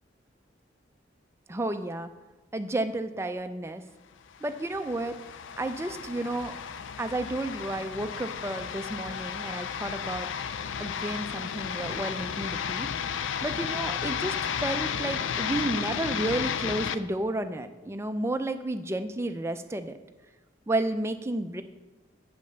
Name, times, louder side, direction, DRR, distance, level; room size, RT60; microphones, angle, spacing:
voice 1, 1.5-2.1 2.5-3.8 4.4-5.2 5.6-6.5 7.0-10.3 10.8-12.9 13.4-20.0 20.7-21.6, right 1 dB, 15° right, 8 dB, 0.4 m, -31 dB
sound 1, 4.4-17.0, left 7 dB, 85° left, 0.4 m, -33 dB
7.9 x 5.2 x 6.7 m, 1.1 s
head